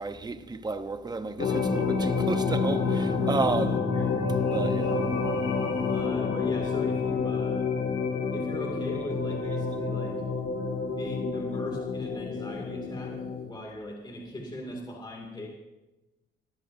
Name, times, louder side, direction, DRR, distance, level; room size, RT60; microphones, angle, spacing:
voice 1, 0.0-3.8 4.4-5.0, right 3 dB, 20° right, 0.9 m, -32 dB
sound 1, 1.4-13.4, left 4 dB, 70° left, 2.4 m, -28 dB
voice 2, 3.5-4.1 5.9-7.7 8.3-10.2 10.9-15.5, left 1 dB, 20° left, 2.5 m, -39 dB
19.0 x 12.0 x 2.7 m
cardioid pair, 90°, 20 cm